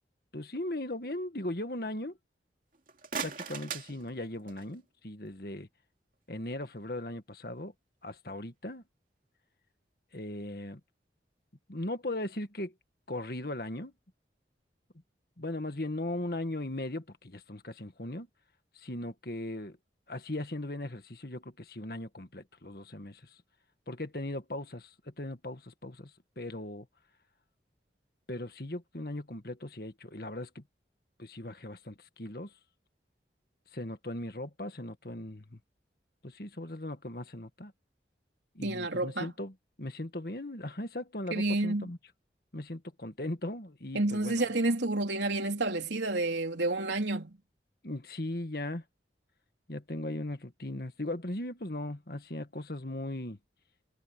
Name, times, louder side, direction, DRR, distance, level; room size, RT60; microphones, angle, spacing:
voice 1, 0.3-2.2 3.2-5.7 6.3-7.7 8.0-8.8 10.1-10.8 11.7-12.7 13.1-13.9 15.4-18.3 18.7-19.8 20.1-23.4 23.9-26.9 28.3-30.6 31.2-32.5 33.7-35.6 36.2-37.7 38.5-42.0 42.5-44.5 47.8-48.8 49.7-53.4, left 1 dB, 55° left, 1.9 m, -38 dB
sound 1, 2.7-4.8, right 6 dB, 50° right, 2.7 m, -40 dB
voice 2, 38.6-39.3 41.3-41.9 43.9-47.4, right 2 dB, 85° right, 3.6 m, -30 dB
head